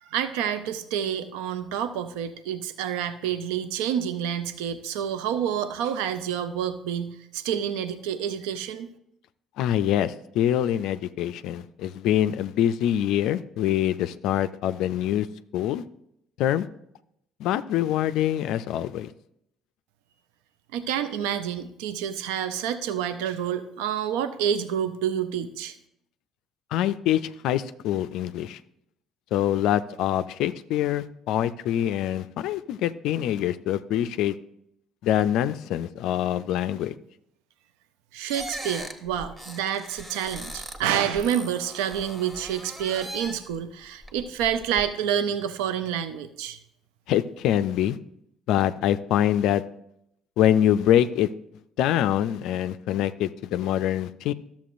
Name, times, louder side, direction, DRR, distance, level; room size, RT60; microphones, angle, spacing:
voice 1, 0.0-8.9 20.7-25.7 38.1-46.6, right 9 dB, 75° right, 11 dB, 0.5 m, -28 dB
voice 2, 9.6-15.3 15.5-15.8 16.4-16.7 17.4-19.1 26.7-28.6 29.3-34.3 35.0-37.0 47.1-48.0 48.5-49.6 50.4-51.3 51.8-54.3, left 11 dB, 70° left, 12 dB, 0.3 m, -24 dB
sound 1, 38.3-40.8 41.2-43.5 44.0-44.8, right 1 dB, 25° right, 1.6 m, -39 dB
12.5 x 7.1 x 2.5 m, 0.75 s
hypercardioid pair, 60°, 0 cm